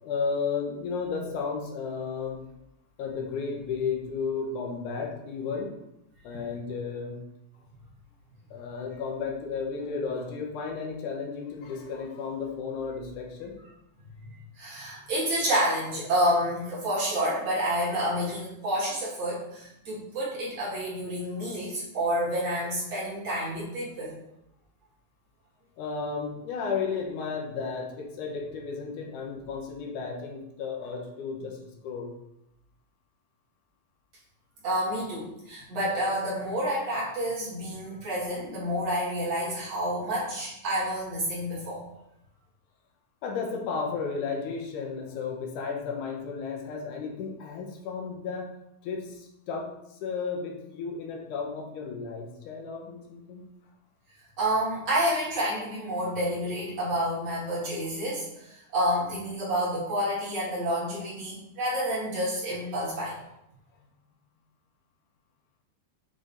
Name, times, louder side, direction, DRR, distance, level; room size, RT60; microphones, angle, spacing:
voice 1, 0.0-2.4 3.0-5.7 6.2-7.2 8.5-13.6 25.8-31.6 31.8-32.1 43.2-48.5 48.8-49.7 50.0-53.5, left 5 dB, 85° left, 1 dB, 2.5 m, -33 dB
voice 2, 14.6-24.1 34.6-41.8 54.4-63.2, equal, 55° right, -8 dB, 3.6 m, -29 dB
8.0 x 3.9 x 3.9 m, 0.82 s
omnidirectional pair, 3.5 m